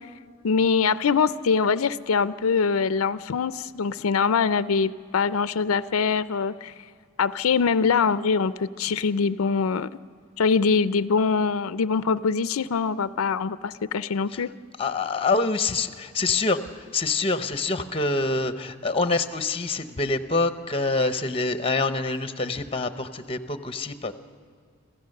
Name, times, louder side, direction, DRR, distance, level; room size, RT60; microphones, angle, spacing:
voice 1, 0.4-6.7 7.2-9.9 10.4-14.5, left 5 dB, 90° left, 14 dB, 0.5 m, -23 dB
voice 2, 14.8-24.1, left 3 dB, 25° left, 10 dB, 0.8 m, -26 dB
27.0 x 15.5 x 6.6 m, 2.1 s
head